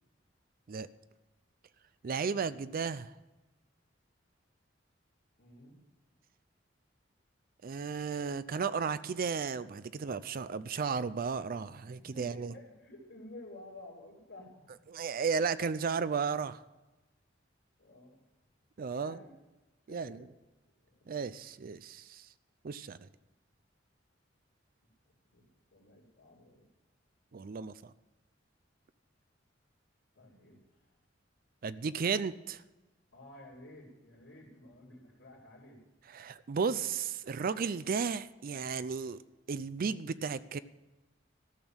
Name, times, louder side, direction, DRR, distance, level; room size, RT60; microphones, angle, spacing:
voice 1, 2.0-3.1 7.6-12.5 14.9-16.6 18.8-19.2 19.9-20.2 21.1-22.3 22.6-23.1 27.3-27.9 31.6-32.6 36.1-39.2 39.5-40.6, right 5 dB, 50° right, 15 dB, 0.4 m, -34 dB
voice 2, 5.4-5.8 12.0-14.6 17.8-18.2 18.9-19.3 19.9-20.3 20.8-21.2 25.3-25.4 25.7-26.6 30.1-30.8 33.1-35.8, left 1 dB, 75° left, -7 dB, 2.9 m, -52 dB
13.5 x 6.3 x 8.7 m, 1.1 s
head